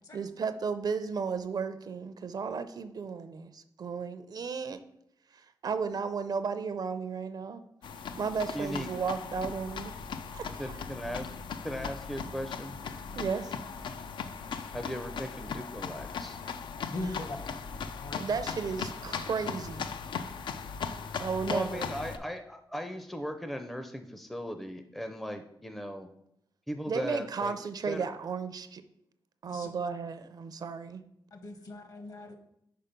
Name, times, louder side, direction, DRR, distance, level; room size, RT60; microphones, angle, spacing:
voice 1, 0.1-4.8 5.3-7.6 8.2-9.9 10.3-10.7 13.2-13.5 18.2-19.9 21.2-21.9 26.9-28.8 29.4-31.0, right 5 dB, 55° right, 11 dB, 0.5 m, -34 dB
sound 1, 7.8-22.2, left 6 dB, 85° left, 0.4 m, -38 dB
voice 2, 8.5-8.9 10.6-11.4 11.6-12.8 14.7-16.4 21.5-26.1 26.7-27.5 27.9-28.0, equal, ahead, 7 dB, 0.4 m, -37 dB
voice 3, 16.8-17.4 18.0-18.4 29.5-29.7 31.3-32.3, left 2 dB, 50° left, 6 dB, 1.0 m, -39 dB
5.6 x 4.5 x 5.1 m, 0.76 s
wide cardioid pair, 115°, 8 cm